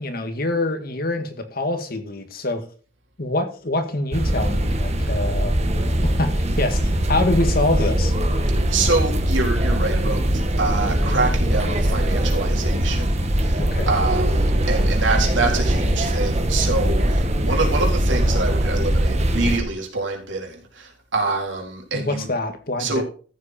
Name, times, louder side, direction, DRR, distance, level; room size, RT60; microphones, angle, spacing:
voice 1, 0.0-2.6 3.2-5.5 6.0-8.1 13.6-13.9 21.9-23.0, left 2 dB, 55° left, 1.9 m, -25 dB
sound 1, 4.1-19.6, right 1 dB, 35° right, 1.6 m, -21 dB
voice 2, 8.7-13.6 13.9-22.3 22.8-23.0, right 3 dB, 85° right, 3.9 m, -26 dB
14.0 x 8.2 x 4.4 m
head